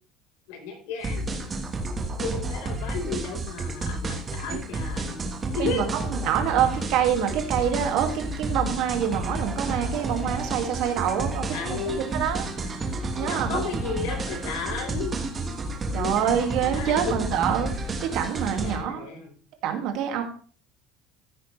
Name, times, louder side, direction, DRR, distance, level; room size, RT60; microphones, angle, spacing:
voice 1, 0.5-1.5 2.2-5.8 11.5-12.0 13.2-15.1 15.9-16.1 16.7-17.3 18.6-19.3, left 5 dB, 80° left, 2 dB, 4.4 m, -33 dB
sound 1, 1.0-18.8, right 2 dB, 20° right, 1.5 m, -31 dB
voice 2, 5.6-12.4 13.2-13.6 15.9-17.7 18.0-19.1 19.6-20.2, right 9 dB, 50° right, 4 dB, 2.2 m, -26 dB
14.5 x 9.0 x 3.3 m, 0.42 s
cardioid pair, 180°, 0 cm